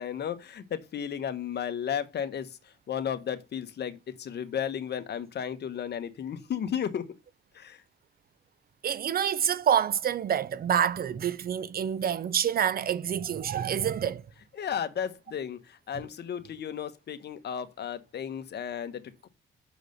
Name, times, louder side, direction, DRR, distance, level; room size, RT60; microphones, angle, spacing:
voice 1, 0.0-7.1 7.5-7.8 14.5-19.3, left 8 dB, 55° left, 1.2 m, -34 dB
voice 2, 8.8-14.3, right 9 dB, 50° right, 0.6 m, -27 dB
6.6 x 5.0 x 6.6 m
cardioid pair, 90°, 20 cm